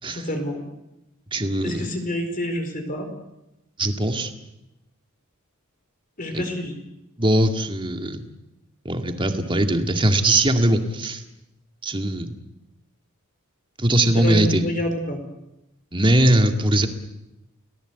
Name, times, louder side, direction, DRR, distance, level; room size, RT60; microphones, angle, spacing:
voice 1, 0.1-0.6 1.6-3.1 6.2-6.7 14.1-15.2, equal, 40° left, 5 dB, 4.6 m, -27 dB
voice 2, 1.3-1.9 3.8-4.3 6.3-6.4 7.2-8.2 8.8-11.2 11.8-12.3 13.8-14.6 15.9-16.9, right 1 dB, 25° right, 5 dB, 2.2 m, -20 dB
30.0 x 19.0 x 8.2 m, 0.90 s
head